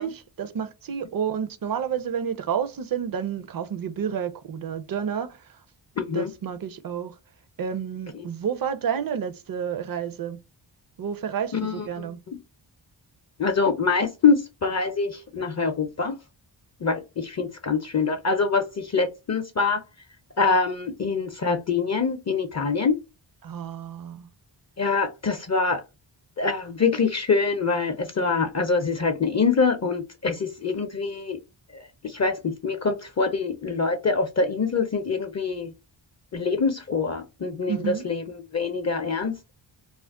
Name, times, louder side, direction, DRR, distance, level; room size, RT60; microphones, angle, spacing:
voice 1, 0.0-5.4 6.1-7.1 7.6-10.4 11.0-12.2 23.4-24.3 37.7-38.0, right 8 dB, 50° right, 0.5 m, -30 dB
voice 2, 6.0-6.3 8.1-8.3 11.5-12.4 13.4-16.2 16.8-19.8 20.4-23.0 24.8-25.8 26.4-31.4 31.7-35.7 36.3-39.3, left 4 dB, 35° left, 0.5 m, -25 dB
2.5 x 2.0 x 3.4 m
cardioid pair, 65°, 47 cm